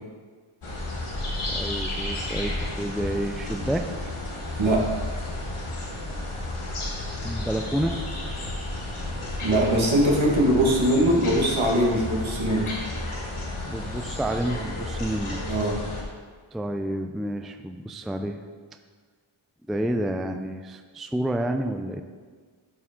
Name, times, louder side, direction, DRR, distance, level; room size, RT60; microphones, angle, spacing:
sound 1, 0.6-16.0, left 1 dB, 75° left, 1.6 m, -32 dB
voice 1, 1.5-3.9 7.2-8.0 13.7-15.4 16.5-18.4 19.7-22.0, right 1 dB, ahead, 6 dB, 0.3 m, -29 dB
voice 2, 9.4-12.7 15.5-15.8, right 1 dB, 65° right, -3 dB, 1.7 m, -21 dB
12.5 x 4.7 x 3.7 m, 1.5 s
wide cardioid pair, 75°, 50 cm